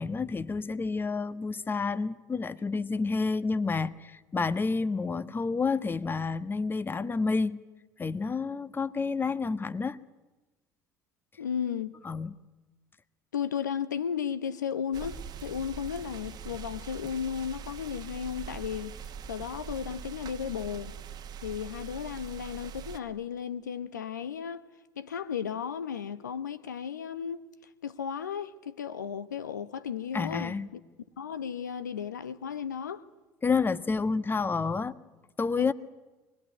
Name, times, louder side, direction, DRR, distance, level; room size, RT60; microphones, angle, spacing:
voice 1, 0.0-7.6 8.0-10.0 12.0-12.3 30.1-30.7 33.4-35.0 35.4-35.7, left 4 dB, 20° left, 1.3 m, -29 dB
voice 2, 11.4-12.0 13.3-19.0 19.3-20.9 21.4-24.7 25.0-27.4 27.8-30.8 31.2-33.0 35.6-35.7, left 8 dB, 85° left, 0.8 m, -34 dB
sound 1, 14.9-23.0, right 7 dB, 45° right, 1.4 m, -42 dB
24.5 x 20.0 x 10.0 m
hypercardioid pair, 65°, 9 cm